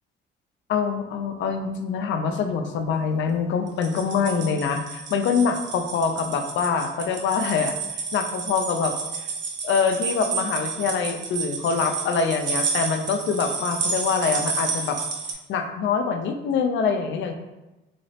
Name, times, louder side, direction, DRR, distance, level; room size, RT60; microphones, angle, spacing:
voice 1, 0.7-8.9 9.6-15.0 15.5-17.3, left 5 dB, 70° left, 6 dB, 0.4 m, -25 dB
sound 1, 3.7-15.3, right 5 dB, 70° right, 0.6 m, -30 dB
3.9 x 2.0 x 2.7 m, 1.1 s
cardioid pair, 90°, 20 cm